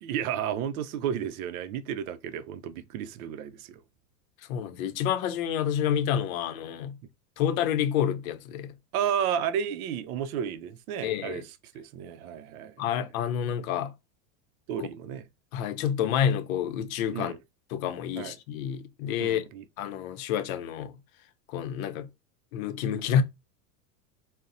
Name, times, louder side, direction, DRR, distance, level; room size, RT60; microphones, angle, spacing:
voice 1, 0.0-3.8 8.9-11.4 11.7-12.7 14.7-15.2 17.1-17.4 18.2-18.3 19.2-19.6, right 9 dB, 75° right, 0.5 m, -32 dB
voice 2, 4.5-7.0 7.4-8.7 11.0-11.4 12.8-13.9 14.8-14.9 15.5-17.3 17.7-19.4 19.8-21.0 21.5-22.1 22.5-23.2, left 9 dB, 65° left, 0.6 m, -28 dB
2.5 x 2.0 x 3.9 m
supercardioid pair, 140°, 44 cm